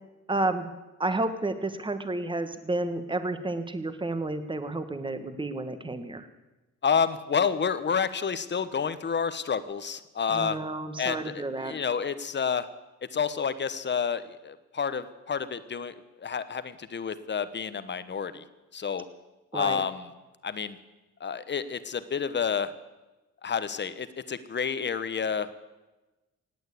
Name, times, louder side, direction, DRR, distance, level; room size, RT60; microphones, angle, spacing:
voice 1, 0.3-0.7 1.0-6.3 10.3-11.8 19.5-19.8, right 2 dB, 15° right, 10 dB, 1.5 m, -31 dB
voice 2, 6.8-10.6 11.0-12.7 13.1-15.9 16.2-18.4 18.7-19.1 19.5-20.1 20.4-20.8 21.2-22.7 23.4-25.5, left 6 dB, 35° left, 13 dB, 1.1 m, -29 dB
17.5 x 9.2 x 8.4 m, 1.1 s
cardioid pair, 90°, 30 cm